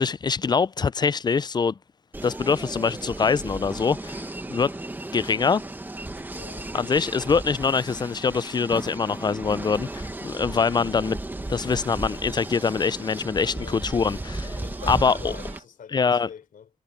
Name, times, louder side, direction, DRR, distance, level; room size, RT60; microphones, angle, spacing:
voice 1, 0.0-1.7 2.2-4.2 4.5-4.7 5.1-5.6 6.7-11.2 11.5-14.6 14.9-15.3 15.9-16.3, left 5 dB, 30° left, 0.4 m, -24 dB
sound 1, 2.1-15.6, right 2 dB, 15° right, 1.2 m, -35 dB
sound 2, 6.1-15.7, right 6 dB, 50° right, 2.4 m, -53 dB
voice 2, 6.3-6.7 13.5-13.8 14.4-16.7, left 7 dB, 75° left, 4.4 m, -44 dB
wide cardioid pair, 130°, 14 cm